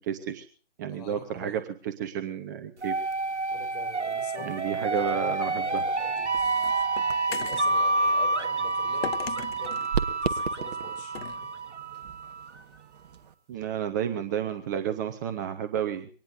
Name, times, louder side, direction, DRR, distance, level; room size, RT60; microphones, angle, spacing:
voice 1, 0.0-0.4 0.8-2.9 4.4-5.8 13.5-16.1, right 9 dB, 15° right, 8 dB, 0.7 m, -31 dB
voice 2, 0.8-1.6 3.5-6.6 7.3-11.5, left 6 dB, 40° left, 5 dB, 4.5 m, -46 dB
sound 1, 2.8-12.5, right 3 dB, 85° right, 1.4 m, -28 dB
sound 2, 5.6-13.3, right 7 dB, 35° right, 1.2 m, -38 dB
sound 3, 5.8-7.7 9.0-9.9 11.1-11.4, left 7 dB, 60° left, 1.3 m, -38 dB
24.0 x 19.0 x 2.6 m, 0.40 s
figure-of-eight pair, 140°, 34 cm